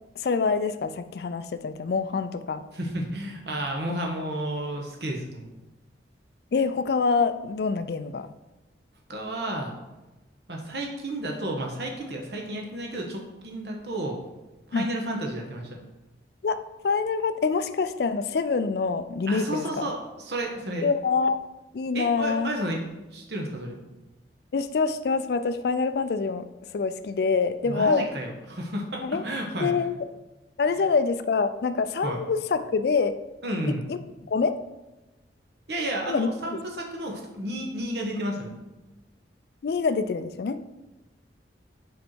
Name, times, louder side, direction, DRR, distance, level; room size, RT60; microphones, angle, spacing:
voice 1, 0.2-2.7 6.5-8.3 14.7-14.9 16.4-19.9 20.8-21.4 21.7-22.5 24.5-26.5 26.7-28.1 29.0-29.2 29.6-29.9 30.6-33.2 33.9-34.0 34.3-34.6 36.1-36.6 39.6-40.6, left 4 dB, 60° left, 12 dB, 0.4 m, -25 dB
voice 2, 2.7-5.5 9.1-9.7 10.5-14.2 14.7-15.8 19.3-20.8 21.9-23.8 27.6-29.7 30.8-30.9 32.0-32.2 33.4-33.8 35.7-38.6, right 1 dB, 65° right, 1 dB, 1.2 m, -32 dB
5.2 x 4.5 x 4.5 m, 1.0 s
head